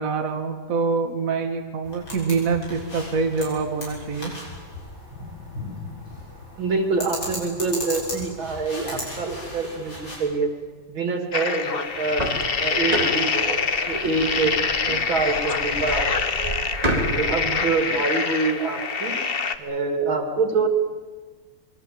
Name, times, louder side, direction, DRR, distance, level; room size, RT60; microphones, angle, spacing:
voice 1, 0.0-4.3, right 4 dB, 45° right, 4 dB, 2.0 m, -25 dB
sound 1, 1.8-10.2, left 1 dB, 75° left, 8.0 m, -36 dB
voice 2, 6.6-10.5 10.9-12.3 12.6-14.5 14.9-16.6 17.0-19.2 19.6-20.7, right 4 dB, 85° right, 5 dB, 3.4 m, -26 dB
sound 2, 11.3-19.6, left 5 dB, 35° left, 1.0 m, -25 dB
sound 3, 11.9-17.6, right 1 dB, 20° right, 4.4 m, -30 dB
27.5 x 22.5 x 7.7 m, 1.4 s
omnidirectional pair, 2.1 m